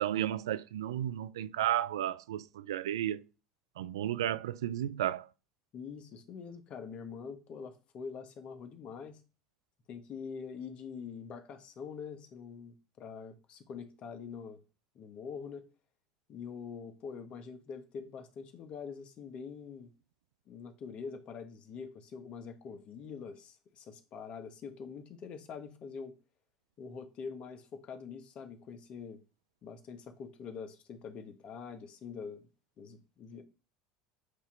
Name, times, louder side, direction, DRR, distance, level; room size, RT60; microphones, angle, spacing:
voice 1, 0.0-3.3 3.8-5.3, right 12 dB, 90° right, 0.4 m, -33 dB
voice 2, 5.7-9.2 9.9-14.6 14.9-15.6 16.3-19.9 20.5-26.1 26.8-29.2 29.6-32.5 32.8-33.4, left 6 dB, 45° left, 1.3 m, -44 dB
8.2 x 3.0 x 5.7 m
hypercardioid pair, 95°, 2 cm